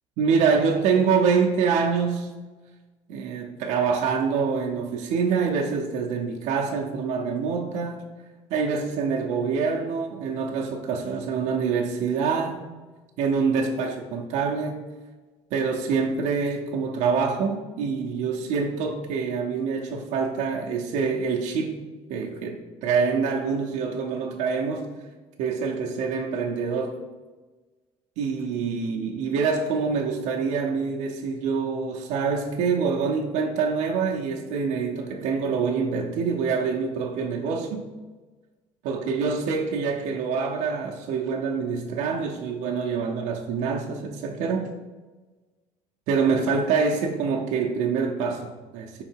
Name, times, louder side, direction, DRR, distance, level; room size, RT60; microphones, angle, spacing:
voice 1, 0.2-2.3 3.1-8.0 8.5-12.6 13.2-14.8 15.5-21.8 22.1-24.9 25.4-27.0 28.2-37.9 38.8-44.7 46.1-49.0, right 5 dB, 80° right, 0.8 m, -25 dB
5.7 x 3.9 x 4.5 m
cardioid pair, 175°, 12 cm